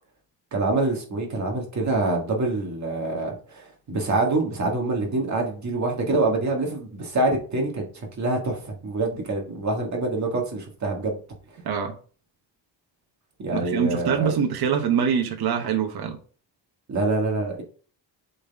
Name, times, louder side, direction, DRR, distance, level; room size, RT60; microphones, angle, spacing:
voice 1, 0.5-7.8 8.2-11.2 13.4-14.3 16.9-17.6, right 2 dB, 35° right, 1.7 m, -25 dB
voice 2, 11.6-11.9 13.5-16.2, right 7 dB, 55° right, 1.1 m, -24 dB
7.7 x 4.1 x 3.5 m
cardioid pair, 165°, 46 cm